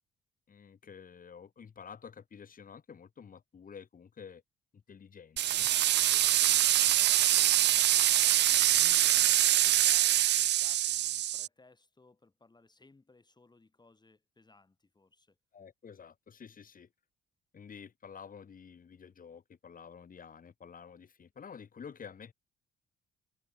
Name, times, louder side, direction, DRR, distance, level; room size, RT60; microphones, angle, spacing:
voice 1, 0.5-4.4 4.7-5.7 15.5-16.9 17.5-22.3, left 6 dB, 45° left, 4.0 m, -50 dB
sound 1, 5.4-11.5, right 13 dB, 60° right, 0.5 m, -25 dB
voice 2, 5.8-15.4, left 3 dB, 20° left, 6.9 m, -61 dB
cardioid pair, 90°, 20 cm